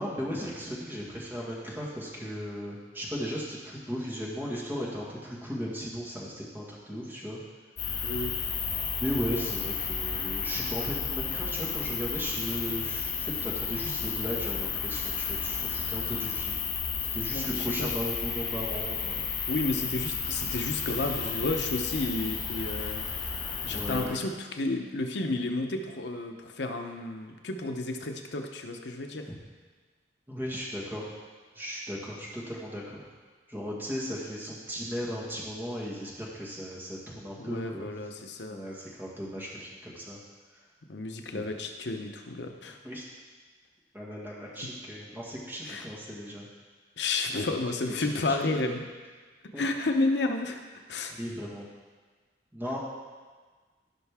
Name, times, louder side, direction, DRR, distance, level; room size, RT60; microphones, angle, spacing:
voice 1, 0.0-7.4 9.0-16.6 17.1-19.4 23.6-24.2 30.3-31.1 31.6-33.0 33.5-37.9 38.5-40.2 41.3-41.4 42.8-43.0 43.9-46.5 48.0-48.6 49.5-49.6 51.1-51.6 52.5-52.8, equal, 10° right, -5 dB, 1.7 m, -36 dB
sound 1, 7.8-24.1, left 6 dB, 50° left, 2.6 m, -32 dB
voice 2, 8.0-8.3 15.9-16.2 17.3-18.0 19.5-23.1 23.7-29.3 37.4-38.6 40.9-42.8 45.7-45.9 47.0-48.8 49.6-50.6 50.9-51.1, left 2 dB, 75° left, 4 dB, 0.8 m, -31 dB
15.5 x 5.7 x 3.6 m, 1.4 s
head